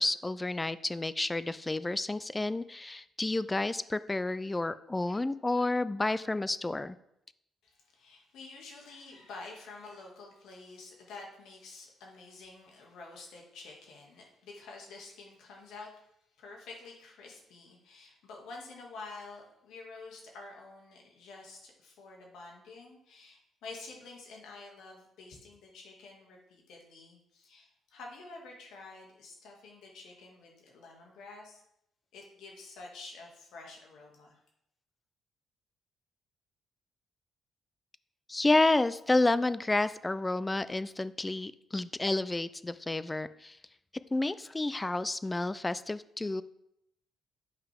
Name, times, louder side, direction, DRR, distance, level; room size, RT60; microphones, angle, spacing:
voice 1, 0.0-7.0 38.3-43.6 44.1-46.4, left 2 dB, 15° left, 15 dB, 0.4 m, -30 dB
voice 2, 7.6-16.0 16.4-31.6 32.1-34.4, left 3 dB, 80° left, -1 dB, 2.1 m, -49 dB
8.9 x 5.6 x 3.5 m, 0.78 s
cardioid pair, 90°, 0 cm